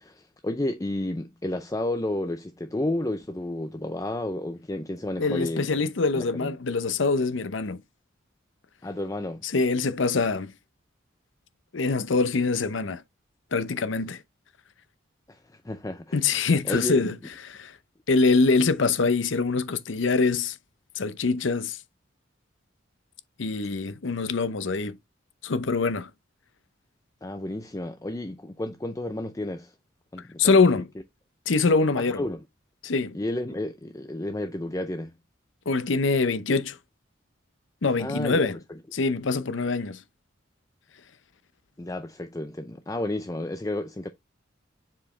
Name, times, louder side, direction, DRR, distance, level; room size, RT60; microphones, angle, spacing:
voice 1, 0.0-5.8 6.1-6.5 8.8-9.4 15.3-16.2 16.6-17.1 27.2-29.7 30.1-30.8 32.0-32.4 33.1-35.1 38.0-38.8 41.8-44.1, left 1 dB, 15° left, 0.5 m, -32 dB
voice 2, 5.2-7.8 9.4-10.5 11.7-13.0 13.5-14.2 16.1-17.1 17.4-17.7 18.1-20.6 21.0-21.8 23.4-25.0 25.4-26.1 30.4-30.9 31.5-32.2 32.8-33.2 35.7-36.8 37.8-38.6 38.9-40.0, left 4 dB, 70° left, 0.7 m, -24 dB
7.3 x 4.6 x 3.2 m
head